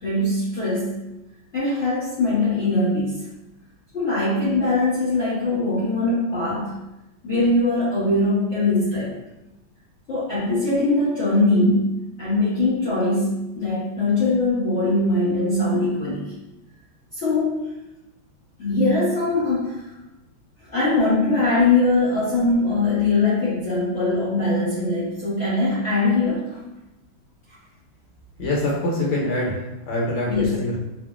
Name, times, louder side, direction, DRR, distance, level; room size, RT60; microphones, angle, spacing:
voice 1, 0.0-1.0 1.5-3.3 3.9-6.7 7.2-9.1 10.1-16.3 17.1-17.6 18.6-19.8 20.7-26.6 30.2-30.6, left 2 dB, 50° left, -12 dB, 0.8 m, -21 dB
voice 2, 28.4-30.8, left 1 dB, 90° left, -4 dB, 1.5 m, -25 dB
3.3 x 2.2 x 2.3 m, 0.96 s
omnidirectional pair, 2.3 m